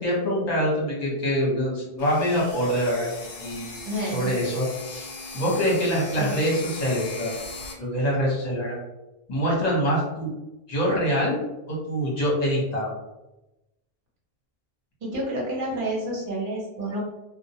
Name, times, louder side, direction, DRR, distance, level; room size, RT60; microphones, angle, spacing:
voice 1, 0.0-7.3 7.8-8.8 9.3-10.3 10.7-11.4 11.7-12.9, equal, 45° left, -5 dB, 0.9 m, -25 dB
sound 1, 2.0-7.7, left 3 dB, 65° left, 0.7 m, -38 dB
voice 2, 3.8-4.3 6.2-6.3 15.0-17.0, right 1 dB, 55° right, -4 dB, 1.0 m, -29 dB
2.2 x 2.1 x 2.7 m, 0.98 s
omnidirectional pair, 1.1 m